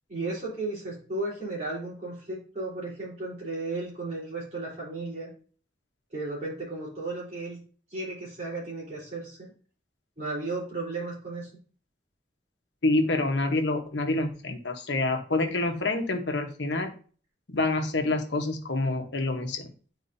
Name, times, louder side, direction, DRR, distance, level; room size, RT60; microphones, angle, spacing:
voice 1, 0.1-5.3 6.1-7.6 7.9-9.5 10.2-11.5, right 2 dB, 40° right, -6 dB, 3.8 m, -34 dB
voice 2, 12.8-16.9 17.5-19.7, left 2 dB, 75° left, 4 dB, 1.2 m, -27 dB
9.6 x 4.6 x 2.7 m, 0.41 s
head